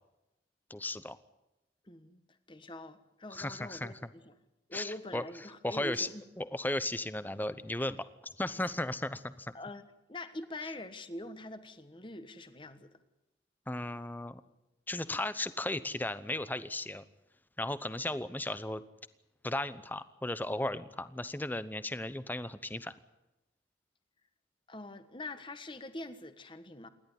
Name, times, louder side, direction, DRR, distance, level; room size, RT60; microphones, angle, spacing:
voice 1, 0.7-1.2 3.3-3.9 4.7-5.2 5.6-6.1 6.4-9.5 13.7-14.4 14.9-17.0 17.6-18.8 19.4-22.9, left 1 dB, 10° left, 0.8 m, -35 dB
voice 2, 1.9-2.2 2.5-4.3 4.7-6.2 9.5-12.9 24.7-26.9, left 2 dB, 25° left, 1.4 m, -44 dB
28.0 x 11.5 x 9.9 m
head